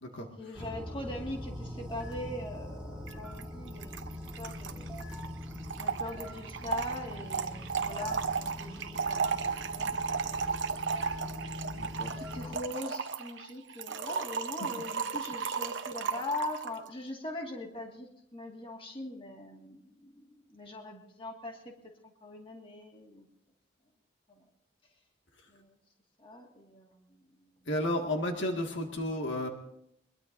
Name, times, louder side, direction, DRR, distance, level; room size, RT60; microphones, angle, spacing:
voice 1, 0.4-4.9 5.8-10.0 10.4-10.6 12.2-21.7 22.0-23.3 24.3-24.5 25.5-25.8 26.2-27.5, left 1 dB, 25° left, 1 dB, 1.9 m, -41 dB
sound 1, 0.5-12.6, left 1 dB, 5° right, 1.8 m, -42 dB
Trickle dribble / Fill (with liquid), 3.1-3.2 3.4-3.5 3.7-16.8, right 5 dB, 65° right, 0.9 m, -35 dB
voice 2, 11.7-12.1 27.7-29.5, left 1 dB, 70° left, 2 dB, 2.0 m, -32 dB
22.5 x 22.0 x 2.7 m, 0.76 s
head